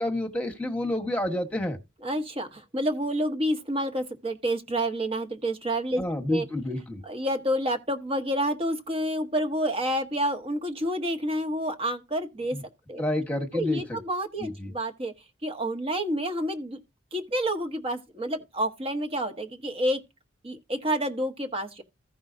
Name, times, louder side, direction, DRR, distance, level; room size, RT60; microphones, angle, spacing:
voice 1, 0.0-1.8 6.0-7.0 12.5-12.6 13.0-14.0 14.4-14.7, left 1 dB, 5° left, 1.3 m, -29 dB
voice 2, 2.0-6.0 6.3-6.5 7.0-12.6 12.9-13.0 13.5-15.1 15.4-16.8 17.1-20.0 20.4-21.8, equal, 30° right, 1.0 m, -29 dB
15.5 x 5.5 x 2.6 m
head